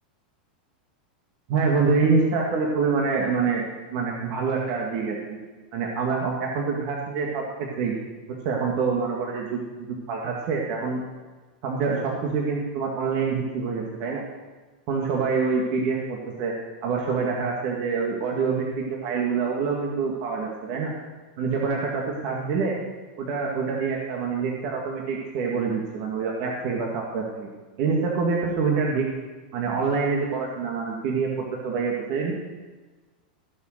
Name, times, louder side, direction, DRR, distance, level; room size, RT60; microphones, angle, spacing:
voice 1, 1.5-3.6 3.9-5.2 5.7-7.9 8.3-11.0 11.6-14.2 14.9-16.5 16.8-20.9 21.4-22.8 23.2-27.5 27.8-29.1 29.5-31.3 31.6-32.3, right 5 dB, 50° right, -1 dB, 1.9 m, -26 dB
16.0 x 6.4 x 6.5 m, 1.3 s
supercardioid pair, 140°, 5 cm